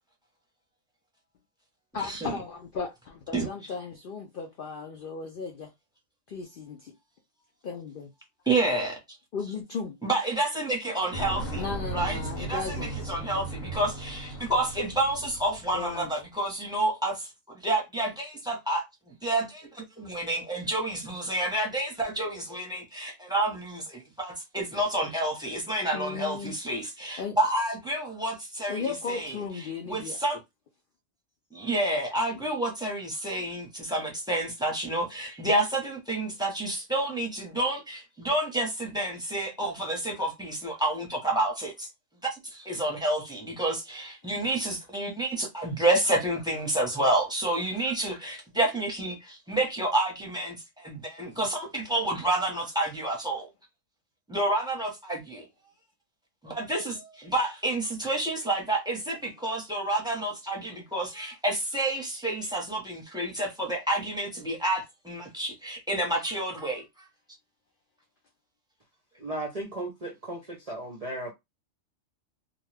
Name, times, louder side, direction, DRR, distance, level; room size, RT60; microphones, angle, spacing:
voice 1, 1.9-5.7 6.3-6.9 7.6-8.1 9.3-9.9 11.5-13.2 15.7-16.1 25.9-26.6 27.2-27.4 28.7-30.2, left 5 dB, 65° left, 0.5 m, -36 dB
voice 2, 8.5-9.0 10.0-11.6 11.9-18.8 19.2-29.3 29.8-30.4 31.5-41.9 42.3-53.5 54.3-55.5 56.4-66.8, right 1 dB, 5° right, 0.7 m, -29 dB
sound 1, 11.1-16.1, right 2 dB, 85° left, 1.2 m, -36 dB
voice 3, 69.2-71.3, right 1 dB, 45° right, 0.5 m, -35 dB
2.5 x 2.3 x 3.2 m
omnidirectional pair, 1.4 m